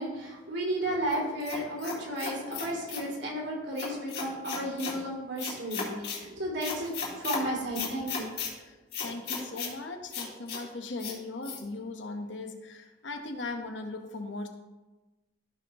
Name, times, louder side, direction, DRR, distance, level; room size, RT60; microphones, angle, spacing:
voice 1, 0.0-8.3, right 1 dB, 85° right, -3 dB, 3.0 m, -33 dB
sound 1, 1.1-3.1 3.8-5.0 5.4-6.2 6.6-7.4 7.7-8.5 8.9-9.7 10.1-10.6 11.0-11.2 11.4-11.6, left 5 dB, 60° left, 3.1 m, -35 dB
voice 2, 9.0-14.5, left 3 dB, 85° left, 5 dB, 1.1 m, -38 dB
14.5 x 5.4 x 3.0 m, 1.1 s
head